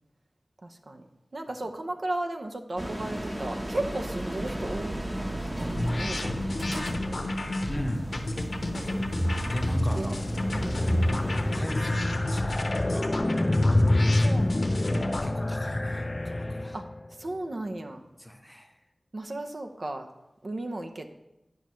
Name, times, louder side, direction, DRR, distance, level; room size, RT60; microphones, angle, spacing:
voice 1, 0.6-1.1 1.3-5.0 5.3-5.5 5.8-7.2 8.8-8.9 10.0-10.2 10.5-11.0 13.8-14.9 16.7-16.9 17.2-18.0 19.1-20.1 20.4-21.1, right 1 dB, 65° right, 5 dB, 0.6 m, -35 dB
sound 1, 2.8-11.6, right 1 dB, 20° right, 0.8 m, -33 dB
sound 2, 5.7-15.3, left 1 dB, 70° left, 0.8 m, -31 dB
voice 2, 7.7-8.5 8.8-9.0 9.4-10.2 11.1-13.1 14.9-16.8 18.2-18.8, equal, 10° left, 5 dB, 0.7 m, -39 dB
sound 3, 9.7-17.1, left 1 dB, 35° left, 0.3 m, -27 dB
10.5 x 5.6 x 3.1 m, 0.93 s
cardioid pair, 40°, 0 cm